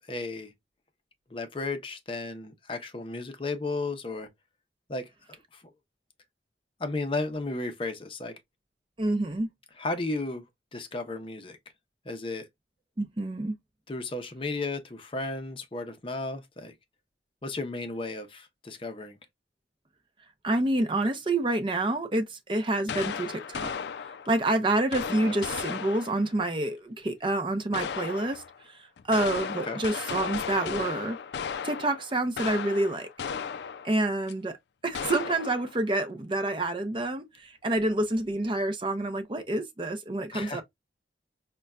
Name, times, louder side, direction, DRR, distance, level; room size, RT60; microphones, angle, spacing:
voice 1, 0.1-0.5 1.3-4.3 4.9-5.1 5.5-5.6 6.8-8.4 9.8-10.4 10.7-11.6 12.1-12.5 13.9-16.7 17.4-19.2 25.2-25.3 29.6-29.8 35.3-35.4 40.3-40.6, left 3 dB, 30° left, 0.6 m, -34 dB
voice 2, 9.0-9.5 13.0-13.5 20.4-23.7 24.3-28.4 28.7-31.2 31.6-33.1 33.8-34.6 34.8-40.6, right 2 dB, 30° right, 0.5 m, -28 dB
sound 1, 22.9-24.4 24.9-26.3 27.7-28.6 29.0-34.0 34.3-34.4 34.9-35.8, left 7 dB, 70° left, 0.3 m, -35 dB
5.2 x 2.2 x 2.2 m
head